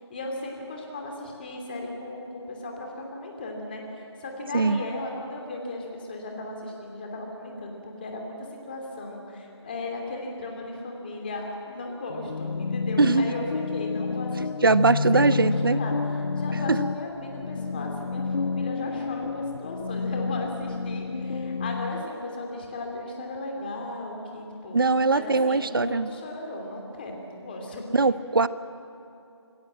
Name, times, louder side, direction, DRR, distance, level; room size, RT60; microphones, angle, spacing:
voice 1, 0.1-8.4 8.7-14.5 14.9-15.9 16.3-24.8 25.1-27.8, left 2 dB, 20° left, 1 dB, 2.9 m, -36 dB
sound 1, 12.1-22.0, left 4 dB, 65° left, 0.6 m, -30 dB
voice 2, 13.0-13.3 14.6-15.8 16.7-16.8 24.7-26.1 27.9-28.5, right 3 dB, 50° right, 15 dB, 0.8 m, -21 dB
27.0 x 19.5 x 7.6 m, 2.7 s
figure-of-eight pair, 170°, 15 cm